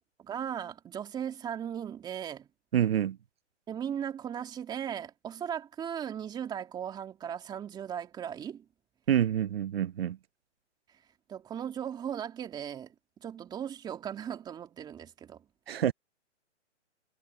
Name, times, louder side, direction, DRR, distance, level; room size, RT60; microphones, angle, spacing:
voice 1, 0.2-2.5 3.7-8.7 10.9-11.0 11.3-12.9 13.2-15.5, right 9 dB, 10° right, 2.7 m, -37 dB
voice 2, 2.7-3.2 9.1-10.2 15.7-15.9, right 10 dB, 55° right, 1.2 m, -27 dB
hypercardioid pair, 150°, 36 cm